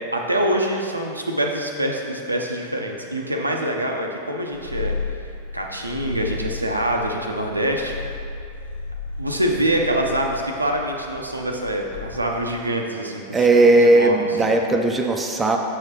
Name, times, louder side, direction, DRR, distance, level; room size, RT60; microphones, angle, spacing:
voice 1, 0.1-5.2 5.5-7.9 9.2-14.3, right 1 dB, 85° right, 1 dB, 0.5 m, -25 dB
Purr, 4.5-12.6, left 3 dB, 75° left, 0.8 m, -34 dB
voice 2, 13.3-15.6, right 2 dB, 10° right, 2 dB, 0.5 m, -17 dB
6.3 x 4.4 x 3.7 m, 2.5 s
figure-of-eight pair, 90°, 0 cm